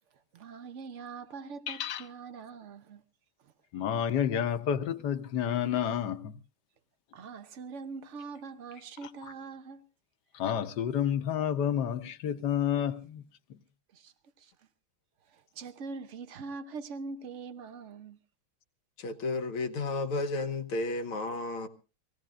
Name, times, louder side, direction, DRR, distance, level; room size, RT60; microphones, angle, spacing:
voice 1, 0.3-3.0 3.4-3.5 7.1-9.8 13.9-14.5 15.3-18.2, right 4 dB, 55° right, 0.8 m, -43 dB
voice 2, 1.7-2.0 3.7-6.3 9.0-9.1 10.3-13.2, left 9 dB, 60° left, 1.3 m, -30 dB
voice 3, 19.0-21.7, left 3 dB, 90° left, 2.0 m, -32 dB
24.5 x 17.5 x 2.5 m
omnidirectional pair, 2.3 m